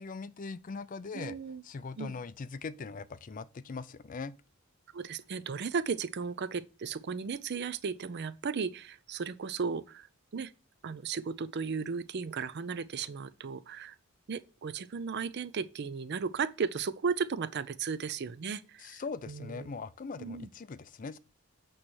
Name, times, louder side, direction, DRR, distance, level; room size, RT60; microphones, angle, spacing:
voice 1, 0.0-1.4 1.6-4.4 18.8-21.2, left 4 dB, 40° left, 0.4 m, -41 dB
voice 2, 1.1-1.6 2.0-2.1 4.9-10.1 10.3-10.5 10.8-13.9 14.3-19.0 19.3-19.7 20.2-20.5, right 5 dB, 50° right, 0.5 m, -35 dB
8.7 x 3.1 x 6.3 m
head